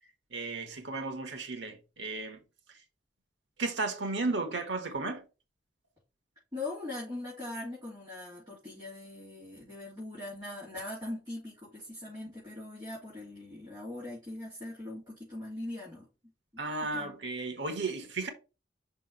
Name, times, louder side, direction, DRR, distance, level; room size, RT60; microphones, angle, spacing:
voice 1, 0.3-2.4 2.7-2.8 3.6-5.2 16.6-18.3, right 3 dB, 85° right, 1.4 m, -34 dB
voice 2, 6.5-16.1 16.8-17.2, left 2 dB, 20° right, 3.4 m, -41 dB
5.8 x 3.5 x 5.5 m
head